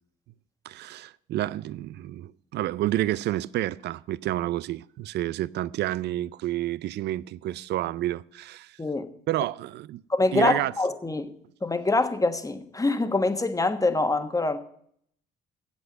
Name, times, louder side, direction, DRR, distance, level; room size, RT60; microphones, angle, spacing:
voice 1, 0.7-8.8 9.3-10.0 10.3-10.7, right 14 dB, 65° right, 0.5 m, -29 dB
voice 2, 8.8-9.1 10.1-11.3 11.6-14.6, left 2 dB, 20° left, 1.3 m, -25 dB
8.4 x 7.9 x 7.8 m
supercardioid pair, 60°, 19 cm